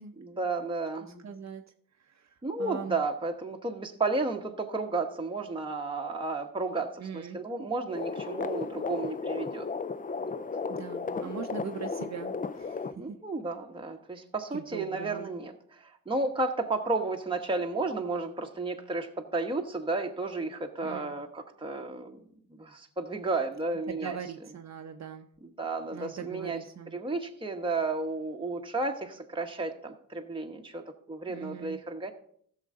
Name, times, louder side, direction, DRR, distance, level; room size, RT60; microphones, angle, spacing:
voice 1, 0.2-1.2 2.4-9.7 10.2-10.3 11.2-11.3 13.0-15.5 16.1-22.2 22.6-24.2 25.6-26.6 26.9-32.1, right 3 dB, 15° right, 2 dB, 1.0 m, -32 dB
voice 2, 1.0-1.6 2.0-3.0 7.0-7.4 10.7-13.2 14.1-14.2 14.5-15.3 20.8-21.2 23.9-25.3 25.9-27.0 31.3-31.8, right 7 dB, 50° right, 5 dB, 0.7 m, -41 dB
sound 1, 7.9-12.9, left 4 dB, 25° left, 0.4 m, -34 dB
14.5 x 6.6 x 3.7 m, 0.64 s
cardioid pair, 80°, 34 cm